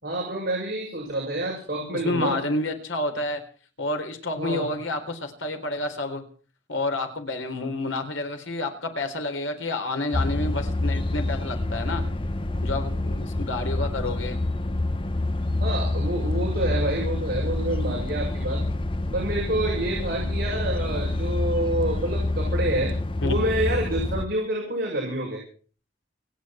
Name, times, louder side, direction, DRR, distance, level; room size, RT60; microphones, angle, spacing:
voice 1, 0.0-2.4 4.3-4.7 15.6-18.6 19.1-22.9 23.2-25.4, right 1 dB, 50° right, -2 dB, 6.9 m, -28 dB
voice 2, 1.9-3.4 3.8-6.2 6.7-12.0 12.6-14.4 23.2-23.3, left 2 dB, 85° left, 6 dB, 4.0 m, -29 dB
sound 1, 10.1-24.3, left 2 dB, 25° left, 1.0 m, -27 dB
29.5 x 10.0 x 4.4 m, 0.42 s
head